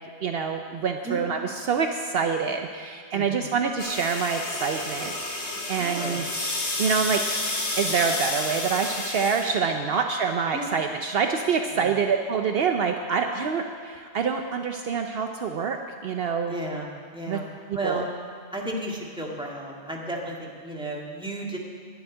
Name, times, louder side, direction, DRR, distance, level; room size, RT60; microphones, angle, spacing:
voice 1, 0.2-6.2 6.8-7.4 7.8-16.5 17.3-17.4 17.8-18.0, right 6 dB, 65° right, 5 dB, 0.8 m, -26 dB
voice 2, 3.1-3.5 5.8-6.2 10.5-10.7 11.7-11.9 16.5-17.4 17.7-18.1 18.5-21.6, right 1 dB, 5° right, -2 dB, 1.7 m, -33 dB
sound 1, 3.8-9.5, left 2 dB, 85° left, 2.2 m, -30 dB
11.5 x 7.2 x 9.8 m, 2.2 s
omnidirectional pair, 1.1 m